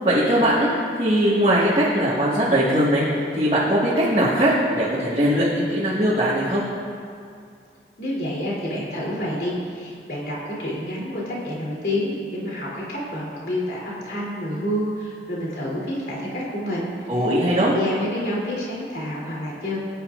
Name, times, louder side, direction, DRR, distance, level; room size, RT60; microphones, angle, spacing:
voice 1, 0.0-0.7 1.0-3.0 3.3-6.6 17.1-17.7, equal, 35° right, -9 dB, 1.7 m, -20 dB
voice 2, 8.0-16.9 17.5-19.8, left 1 dB, 65° left, -6 dB, 3.1 m, -28 dB
20.0 x 10.0 x 2.5 m, 2.3 s
head